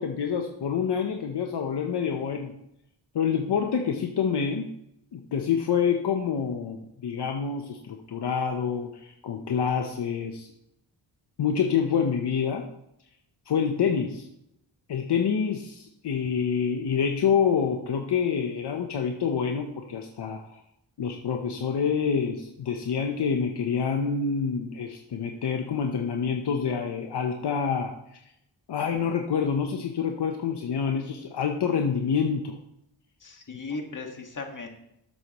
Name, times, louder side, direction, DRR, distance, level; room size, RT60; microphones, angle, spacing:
voice 1, 0.0-2.5 3.1-4.7 5.1-10.5 11.4-12.6 13.5-14.3 14.9-20.6 21.0-27.9 28.7-32.6, left 6 dB, 75° left, 3 dB, 0.9 m, -27 dB
voice 2, 33.2-34.7, left 3 dB, 45° left, 3 dB, 1.8 m, -37 dB
12.0 x 7.9 x 3.0 m, 0.78 s
cardioid pair, 75°, 42 cm